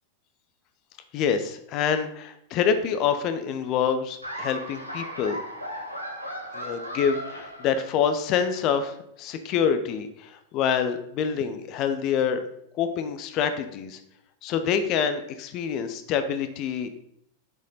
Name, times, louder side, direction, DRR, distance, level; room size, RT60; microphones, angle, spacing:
voice 1, 1.1-5.4 6.5-12.4 12.8-14.0 14.4-16.9, left 7 dB, 40° left, 9 dB, 0.7 m, -26 dB
Laughter, 4.2-8.2, equal, 90° right, 1.1 m, -36 dB
6.5 x 5.2 x 4.1 m, 0.73 s
figure-of-eight pair, 90°, 0 cm